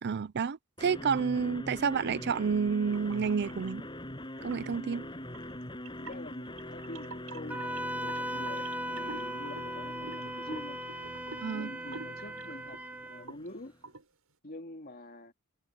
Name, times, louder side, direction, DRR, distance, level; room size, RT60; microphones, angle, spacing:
voice 1, 0.0-3.9 4.4-5.1 11.4-11.7, right 6 dB, 50° right, 0.5 m, -30 dB
sound 1, 0.8-13.8, left 1 dB, 20° left, 6.7 m, -43 dB
sound 2, 2.9-3.7 4.4-4.8 5.3-12.8 13.1-13.5 13.8-14.0, right 3 dB, 85° right, 7.0 m, -47 dB
voice 2, 6.0-10.8 11.5-13.8 14.4-15.3, left 1 dB, 45° left, 2.7 m, -46 dB
Wind instrument woodwind instrument, 7.5-13.3, right 1 dB, 10° right, 1.8 m, -38 dB
head